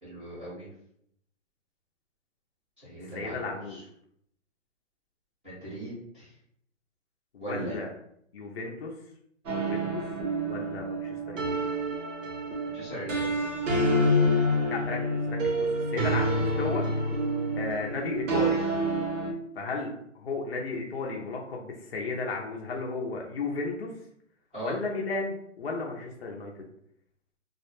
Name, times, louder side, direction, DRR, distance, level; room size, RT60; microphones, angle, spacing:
voice 1, 0.0-0.7 2.8-3.8 5.4-6.3 7.4-7.8 12.7-13.5 24.5-24.8, right 1 dB, 10° right, -15 dB, 0.6 m, -39 dB
voice 2, 3.0-3.8 7.3-7.9 8.3-8.9 9.6-10.0 10.4-11.7 14.7-16.9 17.5-18.6 19.6-23.9 24.6-26.7, left 3 dB, 50° left, 0 dB, 0.5 m, -34 dB
sound 1, 9.5-19.3, equal, 70° right, 0.8 m, -28 dB
2.3 x 2.1 x 3.0 m, 0.71 s
hypercardioid pair, 165°, 39 cm